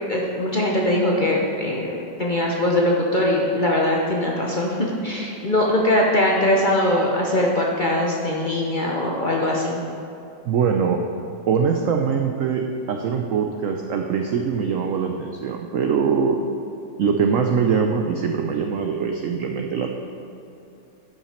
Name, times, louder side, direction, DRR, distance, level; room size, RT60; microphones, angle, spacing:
voice 1, 0.1-9.8, left 1 dB, 50° left, -2 dB, 0.5 m, -21 dB
voice 2, 10.4-11.1 11.5-16.4 17.0-19.9, right 6 dB, 85° right, 3 dB, 0.7 m, -22 dB
11.5 x 5.8 x 4.3 m, 2.7 s
omnidirectional pair, 2.0 m